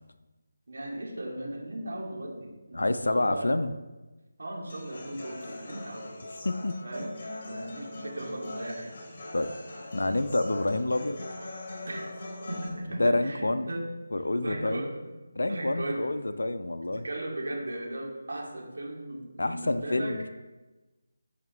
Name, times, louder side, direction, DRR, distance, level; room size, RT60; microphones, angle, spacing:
voice 1, 0.7-3.6 4.4-6.2 6.8-7.1 7.4-8.9 11.8-12.1 12.5-13.8 14.4-15.1 15.5-16.1 16.9-20.2, right 1 dB, 60° right, -2 dB, 2.7 m, -37 dB
voice 2, 2.7-3.7 6.4-6.7 9.3-9.5 9.8-11.2 13.0-13.7 14.1-14.9 15.4-17.1 19.4-20.3, left 2 dB, 70° left, 10 dB, 0.6 m, -28 dB
Human voice / Acoustic guitar, 4.7-12.7, left 2 dB, 35° left, 3.0 m, -41 dB
15.0 x 5.9 x 3.2 m, 1.1 s
figure-of-eight pair, 155°, 0 cm